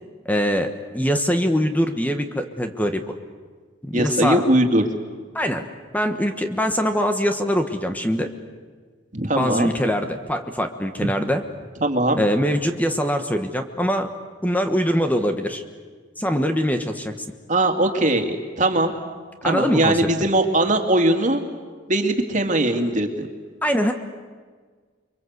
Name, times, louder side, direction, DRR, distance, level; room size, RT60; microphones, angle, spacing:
voice 1, 0.2-3.0 3.8-4.5 5.3-5.7 5.9-8.3 9.4-11.4 12.2-14.1 14.4-15.6 16.2-17.1 19.4-20.0 23.6-23.9, equal, 10° left, 6 dB, 1.3 m, -23 dB
voice 2, 3.9-4.8 9.1-9.7 11.8-12.2 17.5-18.9 19.4-21.4 21.9-23.3, right 1 dB, 40° right, 5 dB, 2.4 m, -20 dB
30.0 x 23.5 x 8.1 m, 1.6 s
head